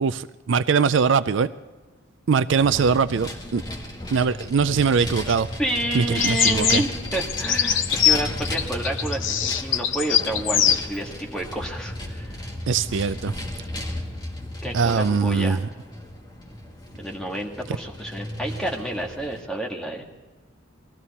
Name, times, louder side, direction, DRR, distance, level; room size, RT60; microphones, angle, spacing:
voice 1, 0.0-1.5 2.3-3.6 4.1-5.5 5.9-6.8 12.7-13.3 14.7-15.6, right 5 dB, 65° right, 14 dB, 0.4 m, -21 dB
Vehicle, 2.5-19.4, left 1 dB, 20° left, 2.0 m, -35 dB
voice 2, 5.3-12.5 14.6-15.6 17.0-20.1, right 1 dB, 5° left, 0 dB, 1.8 m, -30 dB
sound 1, 6.2-10.8, left 9 dB, 70° left, 0.7 m, -22 dB
20.0 x 14.0 x 4.2 m, 1.3 s
head